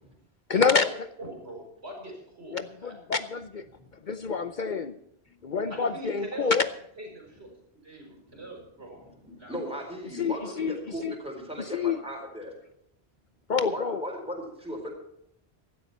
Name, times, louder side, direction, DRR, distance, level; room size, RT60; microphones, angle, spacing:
voice 1, 0.5-0.9 2.5-3.6 4.0-4.9 5.4-6.7 10.2-10.8 11.0-11.1 11.7-12.0 13.5-14.0, left 5 dB, 50° left, 12 dB, 0.8 m, -27 dB
voice 2, 1.2-2.9 5.7-6.6 7.0-7.5 7.8-9.1 9.4-9.6, right 1 dB, 80° right, 1 dB, 5.8 m, -42 dB
voice 3, 9.2-12.5 13.7-14.9, equal, 5° right, 0 dB, 4.3 m, -37 dB
16.0 x 12.5 x 4.3 m, 0.74 s
omnidirectional pair, 1.1 m